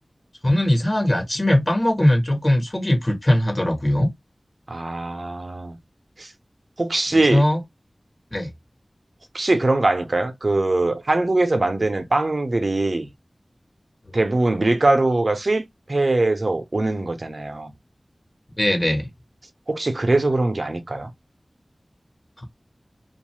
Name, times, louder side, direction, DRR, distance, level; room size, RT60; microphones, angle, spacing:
voice 1, 0.4-4.1 7.1-7.6 8.3-8.5 18.6-19.1, left 1 dB, 35° left, 1.2 m, -20 dB
voice 2, 4.7-5.8 6.2-6.3 6.8-7.4 9.3-13.1 14.1-17.7 19.7-21.1, right 2 dB, 60° right, 0.8 m, -22 dB
2.7 x 2.5 x 3.1 m
wide cardioid pair, 55°, 0 cm